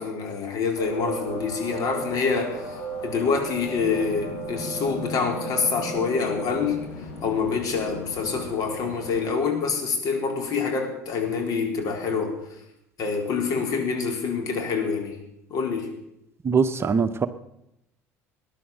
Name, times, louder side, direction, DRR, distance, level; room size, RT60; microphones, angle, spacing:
voice 1, 0.0-2.8 3.0-6.8 7.2-12.4 13.0-15.2 15.5-15.9, left 5 dB, 50° left, 3 dB, 4.3 m, -26 dB
sound 1, 0.8-9.2, right 1 dB, 70° left, 7.2 m, -35 dB
voice 2, 16.4-17.3, right 5 dB, 30° right, 10 dB, 1.0 m, -22 dB
20.0 x 10.5 x 6.6 m, 0.83 s
figure-of-eight pair, 60°, 8 cm